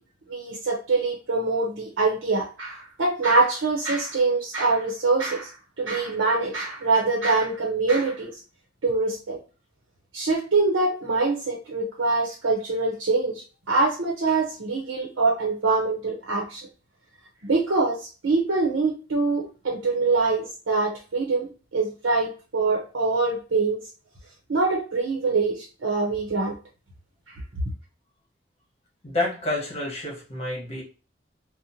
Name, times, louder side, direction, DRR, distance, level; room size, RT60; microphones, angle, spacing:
voice 1, 0.3-8.3 8.8-9.4 10.1-13.3 13.7-16.6 17.4-18.0 18.2-23.8 24.5-26.5, right 3 dB, 85° right, -1 dB, 0.7 m, -24 dB
voice 2, 29.0-30.8, left 2 dB, 35° left, -2 dB, 1.1 m, -29 dB
2.8 x 2.1 x 2.6 m, 0.33 s
head